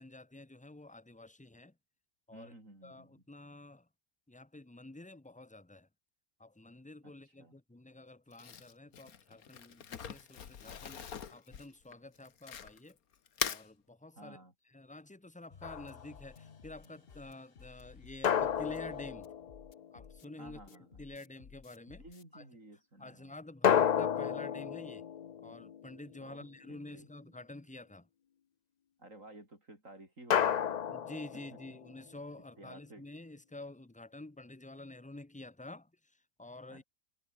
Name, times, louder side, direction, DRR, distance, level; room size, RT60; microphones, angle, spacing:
voice 1, 0.0-1.7 2.3-2.5 2.8-3.9 4.3-5.9 6.4-13.0 13.4-14.4 14.7-19.3 19.9-22.0 22.3-22.4 23.0-25.0 25.4-28.1 30.9-36.8, left 2 dB, 5° left, 0.8 m, -49 dB
voice 2, 2.3-3.2 7.0-7.5 14.2-14.5 20.4-21.0 21.9-23.3 26.2-27.1 29.0-30.9 31.3-31.4 32.6-33.1 36.7-36.8, right 1 dB, 65° right, 8.5 m, -54 dB
Crumpling crinkling, 8.3-12.9 13.3-13.7, left 8 dB, 90° left, 1.8 m, -41 dB
sound 1, 15.5-22.2, left 6 dB, 45° left, 1.3 m, -56 dB
sound 2, 15.6-16.2 18.2-20.1 23.6-26.3 30.3-32.0, left 8 dB, 75° left, 0.4 m, -32 dB
omnidirectional pair, 1.5 m